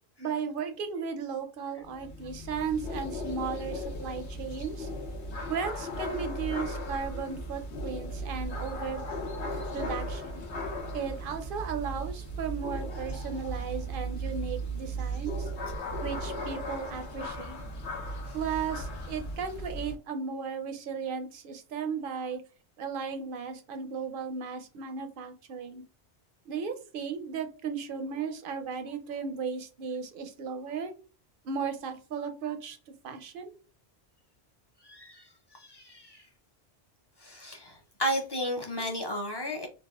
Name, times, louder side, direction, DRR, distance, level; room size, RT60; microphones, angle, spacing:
voice 1, 0.2-4.9 5.5-9.0 9.7-10.4 10.9-15.5 16.0-17.6 18.3-22.4 22.8-25.8 26.5-30.9 31.4-32.8 33.0-33.5, right 6 dB, 60° right, 7 dB, 0.6 m, -35 dB
sound 1, 1.8-19.9, right 1 dB, 80° left, 1.1 m, -36 dB
voice 2, 34.8-36.3 37.2-39.7, equal, 35° left, 1 dB, 0.4 m, -34 dB
4.1 x 2.2 x 2.3 m, 0.35 s
omnidirectional pair, 1.2 m